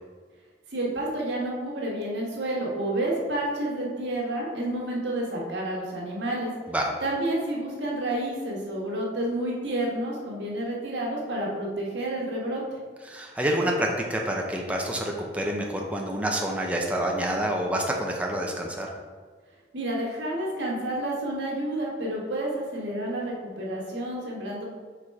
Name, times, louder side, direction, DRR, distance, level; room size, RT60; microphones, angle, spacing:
voice 1, 0.7-6.5 7.0-12.6 19.7-24.6, right 1 dB, 85° right, -3 dB, 1.5 m, -30 dB
voice 2, 13.1-18.9, right 1 dB, 10° right, 0 dB, 0.6 m, -27 dB
5.0 x 4.2 x 4.7 m, 1.5 s
head